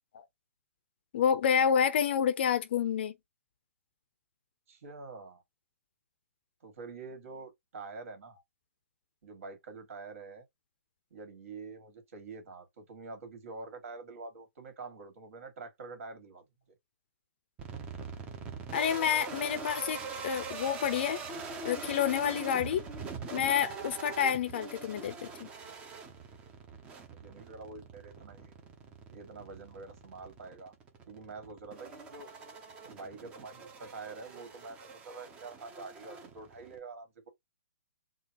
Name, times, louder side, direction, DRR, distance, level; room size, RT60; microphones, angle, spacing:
voice 1, 1.1-3.1 18.7-21.2 21.6-22.8 23.3-25.5, left 8 dB, 45° left, 0.5 m, -29 dB
voice 2, 4.7-5.4 6.6-8.4 9.2-10.4 11.1-16.5 27.1-28.5 29.1-30.7 31.1-32.3 32.8-37.3, right 3 dB, 60° right, 2.0 m, -46 dB
sound 1, 17.6-36.8, right 4 dB, 15° right, 0.6 m, -43 dB
3.8 x 2.4 x 2.9 m
hypercardioid pair, 165°, 8 cm